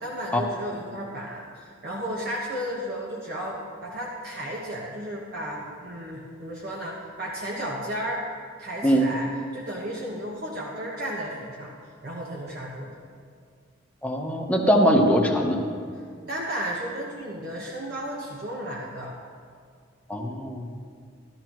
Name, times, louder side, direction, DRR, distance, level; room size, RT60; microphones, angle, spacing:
voice 1, 0.0-8.2 8.6-11.7 12.0-13.0 15.9-16.0 16.3-19.2, equal, 50° right, -4 dB, 1.2 m, -33 dB
voice 2, 14.0-15.6 20.1-20.7, equal, 5° left, 0 dB, 1.0 m, -21 dB
13.5 x 13.0 x 3.1 m, 2.1 s
head